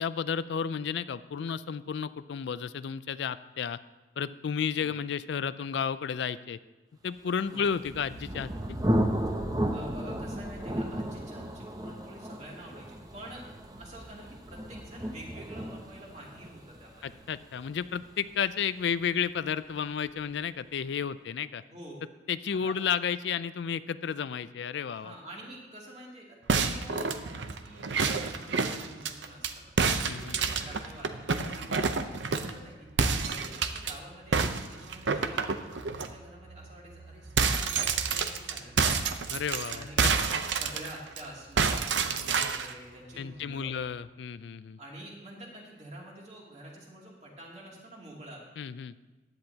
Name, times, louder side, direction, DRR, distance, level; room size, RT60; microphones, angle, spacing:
voice 1, 0.0-3.8 4.2-6.6 7.0-8.8 17.0-21.6 22.3-25.1 30.0-30.4 39.3-40.4 43.2-44.8 48.6-48.9, left 7 dB, 75° left, 15 dB, 0.4 m, -32 dB
Thunder, 7.5-19.0, equal, 20° right, 0.7 m, -34 dB
voice 2, 9.7-13.5 13.7-17.2 21.7-22.0 22.5-22.8 24.9-32.9 33.2-39.0 39.7-40.2 40.5-43.7 44.8-48.4, right 1 dB, 35° right, -3 dB, 2.6 m, -47 dB
sound 1, 26.5-29.5 29.8-32.6 33.0-33.9 34.3-36.1 36.5-36.6 36.9-41.2 41.6-42.7, right 5 dB, 80° right, 0.7 m, -28 dB
15.5 x 10.5 x 2.8 m, 1.2 s
head